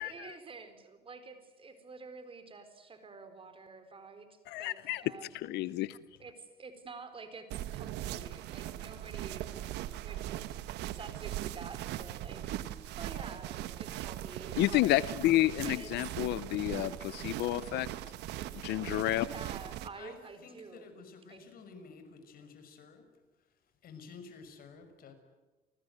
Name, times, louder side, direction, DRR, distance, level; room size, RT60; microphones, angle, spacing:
voice 1, 0.0-4.8 5.0-5.5 6.2-9.7 10.0-10.3 10.9-12.5 13.0-15.0 15.6-16.1 19.2-20.9 21.3-21.5, right 4 dB, 30° right, 9 dB, 4.4 m, -49 dB
voice 2, 4.5-5.0 5.4-6.0 14.6-17.9 18.6-19.3, left 16 dB, 80° left, 16 dB, 0.8 m, -30 dB
sound 1, 7.5-19.9, right 13 dB, 85° right, 1.4 m, -40 dB
voice 3, 20.4-23.0 23.8-25.1, left 5 dB, 60° left, 8 dB, 5.7 m, -51 dB
29.5 x 19.5 x 9.4 m, 1.2 s
cardioid pair, 110°, 17 cm